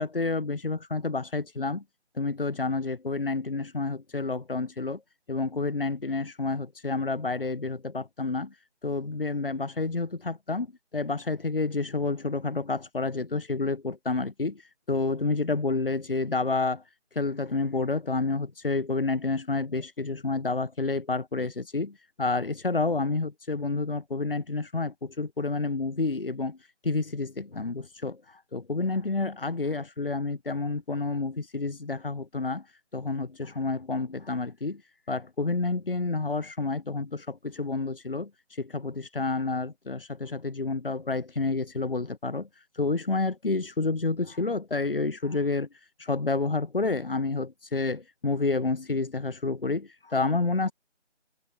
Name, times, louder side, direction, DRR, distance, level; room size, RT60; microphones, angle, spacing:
voice 1, 0.0-1.8 2.1-5.0 5.3-10.7 10.9-16.8 17.1-34.8 35.1-50.7, left 3 dB, 50° left, 0.6 m, -29 dB
figure-of-eight pair, 175°, 35 cm